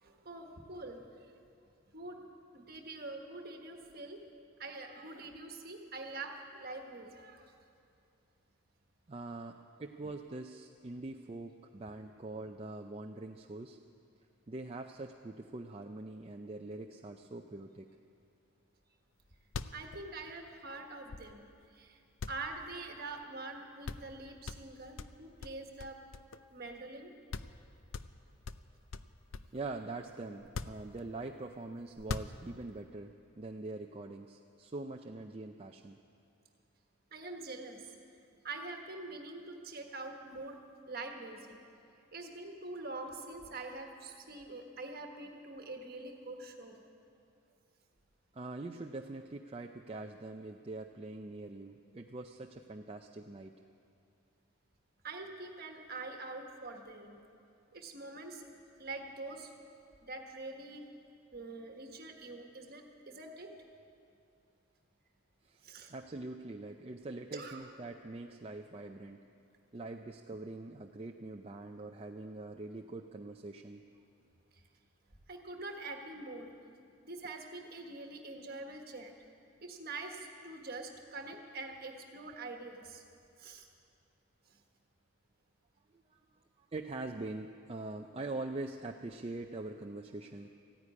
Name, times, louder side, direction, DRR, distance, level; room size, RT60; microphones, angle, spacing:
voice 1, 0.0-1.3 1.9-2.2 2.5-4.2 4.6-7.5 19.7-21.5 21.7-22.0 22.3-26.0 26.5-27.1 37.1-37.9 38.4-40.6 40.9-41.6 42.1-46.8 55.0-57.2 57.7-58.4 58.8-59.5 60.0-60.9 61.3-63.5 65.6-65.9 67.3-67.6 74.5-74.6 75.3-76.5 77.0-79.1 79.6-83.0 83.4-83.7 84.5-84.6, right 3 dB, 45° right, 3 dB, 1.4 m, -45 dB
voice 2, 9.1-13.8 14.5-17.9 29.5-36.0 48.3-53.5 65.4-69.2 69.7-73.8 85.9-86.2 86.7-90.5, right 2 dB, 25° right, 3 dB, 0.4 m, -43 dB
sound 1, 19.1-19.2 19.4-21.6 22.2-23.2 23.5-23.6 23.8-24.2 24.5-26.6 26.9-27.0 27.3-27.6 27.9-29.6 30.4-31.4 31.9-32.8, left 4 dB, 60° left, 0.5 m, -43 dB
14.5 x 9.8 x 9.7 m, 2.5 s
head